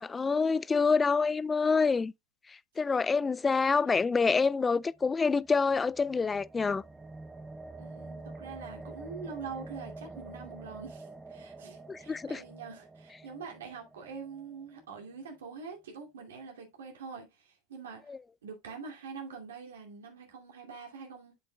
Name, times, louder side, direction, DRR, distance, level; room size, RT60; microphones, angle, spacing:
voice 1, 0.0-2.1 2.5-6.8 11.9-12.4 18.1-18.2, left 4 dB, 20° left, 0.3 m, -27 dB
sound 1, 4.8-15.0, right 2 dB, 15° right, 0.7 m, -47 dB
voice 2, 7.8-18.2 18.4-21.3, right 5 dB, 80° right, 2.5 m, -44 dB
7.7 x 7.1 x 2.3 m
hypercardioid pair, 100°, 0 cm